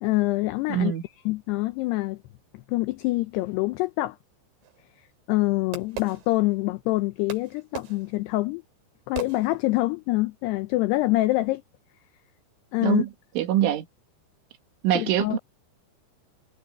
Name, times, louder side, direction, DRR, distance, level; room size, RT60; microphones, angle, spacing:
voice 1, 0.0-0.9 1.3-2.2 2.5-4.2 5.3-8.6 9.1-11.6 12.7-13.0 15.0-15.4, left 19 dB, 90° left, 2.3 m, -25 dB
voice 2, 0.7-1.0 12.8-13.1 13.4-13.9 14.8-15.4, right 12 dB, 80° right, 4.7 m, -23 dB
Fireworks, 4.6-6.8 7.3-10.0, right 10 dB, 65° right, 5.1 m, -40 dB
omnidirectional pair, 5.5 m